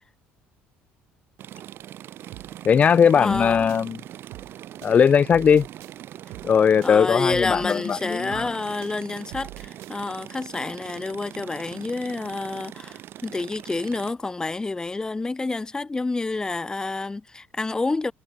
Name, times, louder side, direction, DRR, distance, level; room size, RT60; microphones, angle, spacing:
sound 1, 1.4-14.1, right 12 dB, 55° right, 0.9 m, -41 dB
sound 2, 2.3-2.5 2.8-3.8 4.3-4.5 4.8-5.9 6.3-6.5 6.8-7.8 8.3-8.5 8.8-9.9, right 24 dB, 90° right, 2.8 m, -44 dB
voice 1, 2.6-4.0 4.8-5.7 6.4-8.5, left 7 dB, 35° left, 0.4 m, -19 dB
voice 2, 3.2-3.8 6.8-18.1, left 3 dB, 15° left, 1.8 m, -28 dB
cardioid pair, 110°, 4 cm